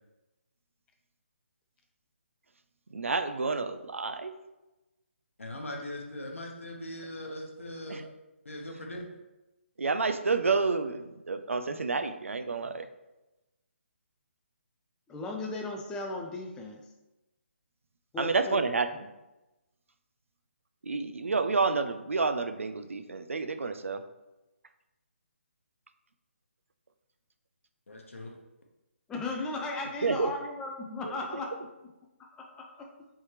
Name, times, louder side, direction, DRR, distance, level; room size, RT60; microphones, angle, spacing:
voice 1, 2.9-4.3 7.9-8.1 9.8-12.9 18.2-19.1 20.8-24.0 30.0-30.3 31.0-31.2, right 4 dB, 85° right, 9 dB, 0.4 m, -29 dB
voice 2, 5.4-8.0 8.4-9.1 27.9-28.3, left 1 dB, 85° left, 1 dB, 0.8 m, -40 dB
voice 3, 15.1-16.8 18.1-18.7 29.1-31.7 32.2-32.9, left 3 dB, 10° left, 2 dB, 0.4 m, -36 dB
4.2 x 3.4 x 3.2 m, 1.0 s
figure-of-eight pair, 150°, 7 cm